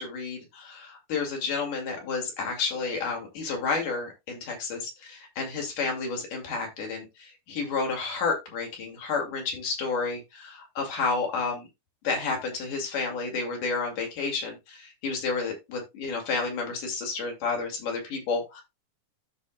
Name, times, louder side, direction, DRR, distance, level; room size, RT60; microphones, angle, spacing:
voice 1, 0.0-11.7 12.0-18.6, left 4 dB, 85° left, 2 dB, 3.8 m, -31 dB
13.0 x 4.6 x 2.3 m, 0.22 s
omnidirectional pair, 3.6 m